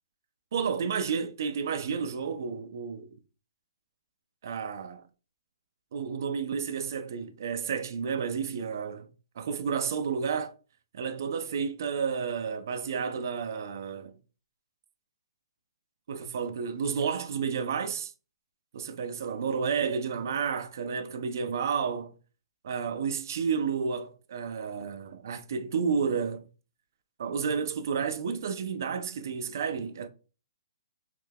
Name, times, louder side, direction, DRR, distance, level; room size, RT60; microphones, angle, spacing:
voice 1, 0.5-3.2 4.4-5.0 5.9-9.1 9.4-10.5 10.9-14.1 16.1-18.1 18.7-22.1 22.6-26.4 27.2-30.1, right 6 dB, 40° right, 0.3 m, -31 dB
3.2 x 2.2 x 3.3 m
hypercardioid pair, 180°, 3 cm